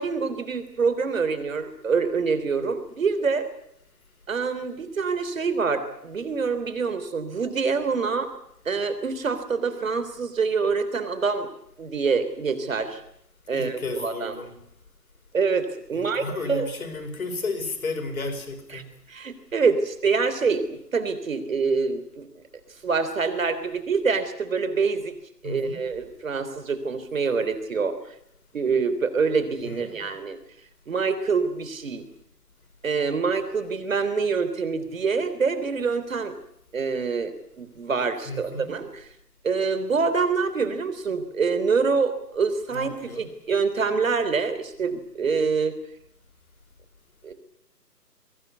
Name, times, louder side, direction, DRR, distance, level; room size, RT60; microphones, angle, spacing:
voice 1, 0.0-3.5 4.3-8.3 8.6-11.5 11.8-13.0 13.5-14.3 15.3-16.2 16.5-16.7 18.7-18.8 19.1-22.3 22.8-25.1 25.4-28.0 28.5-30.4 30.9-32.0 32.8-36.3 36.7-38.9 39.4-42.9 43.2-45.7 47.2-47.3, right 5 dB, 50° right, 11 dB, 3.4 m, -25 dB
voice 2, 13.5-14.6 15.9-18.9 25.4-25.8 29.6-30.1 38.2-38.7 42.7-43.3, left 3 dB, 55° left, 6 dB, 5.2 m, -33 dB
22.5 x 17.0 x 9.6 m, 0.73 s
figure-of-eight pair, 155°, 50 cm